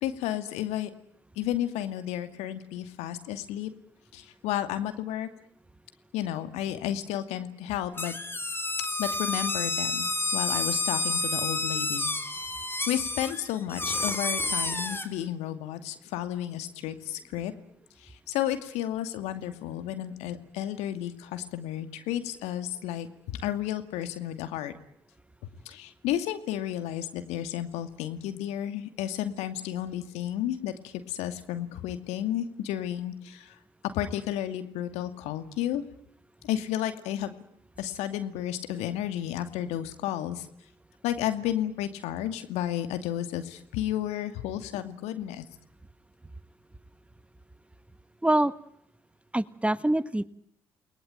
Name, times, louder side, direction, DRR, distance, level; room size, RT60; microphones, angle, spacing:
voice 1, 0.0-0.9 1.4-3.7 4.1-5.3 6.1-8.1 9.0-10.0 10.3-12.1 12.9-17.5 18.0-24.7 25.7-33.5 33.8-35.9 36.4-37.3 37.8-40.5 41.0-45.4, left 11 dB, 70° left, 9 dB, 2.5 m, -32 dB
sound 1, 8.0-15.1, left 2 dB, 20° left, 3.5 m, -30 dB
voice 2, 48.2-48.5 49.3-50.2, right 1 dB, 10° right, 15 dB, 1.4 m, -24 dB
29.5 x 21.0 x 9.1 m, 0.73 s
hypercardioid pair, 45°, 12 cm